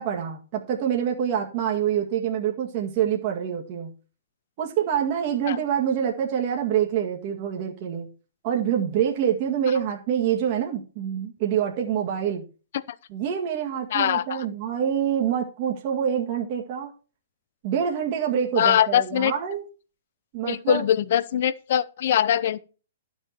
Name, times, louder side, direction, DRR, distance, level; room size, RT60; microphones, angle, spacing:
voice 1, 0.0-3.9 4.6-8.1 8.4-12.4 13.1-16.9 17.6-19.6 20.3-20.8, right 9 dB, 45° right, 1.9 m, -26 dB
voice 2, 13.9-14.4 18.6-19.3 20.5-22.6, left 10 dB, 55° left, 0.7 m, -22 dB
11.5 x 6.4 x 4.4 m
hypercardioid pair, 125°, 0 cm